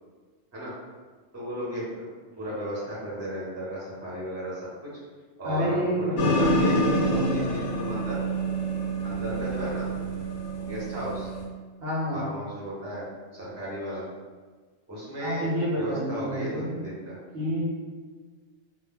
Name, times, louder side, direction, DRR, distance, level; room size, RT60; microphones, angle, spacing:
voice 1, 1.3-2.1 2.3-4.7 5.4-8.2 9.0-9.9 10.5-11.3 12.1-13.0 13.3-14.0 14.9-17.2, equal, 15° right, -8 dB, 0.7 m, -34 dB
voice 2, 5.4-7.7 11.8-12.2 15.2-16.8 17.3-17.6, equal, 60° right, -7 dB, 0.8 m, -29 dB
sound 1, 6.2-11.4, right 1 dB, 70° left, 0.8 m, -27 dB
2.2 x 2.1 x 3.5 m, 1.4 s
omnidirectional pair, 1.2 m